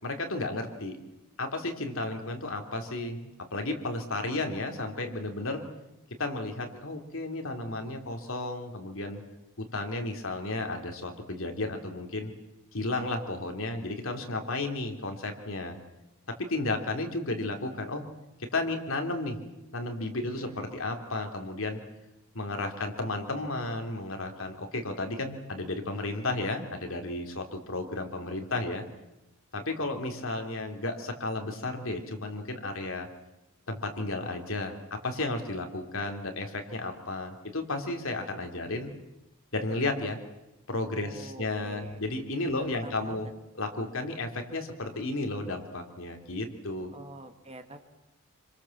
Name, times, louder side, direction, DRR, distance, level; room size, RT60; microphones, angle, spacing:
voice 1, 0.0-1.0 1.4-3.2 3.5-5.6 6.2-9.2 9.6-12.3 12.7-15.7 16.4-18.0 18.4-19.4 19.7-21.8 22.3-28.8 29.5-33.1 33.7-38.9 39.5-40.2 40.7-43.3 43.6-46.9, left 2 dB, 65° left, 4 dB, 3.4 m, -33 dB
voice 2, 20.2-20.7 40.9-42.0 42.5-43.3 46.9-47.8, right 2 dB, 30° right, 6 dB, 2.1 m, -47 dB
26.5 x 26.0 x 7.5 m, 0.96 s
head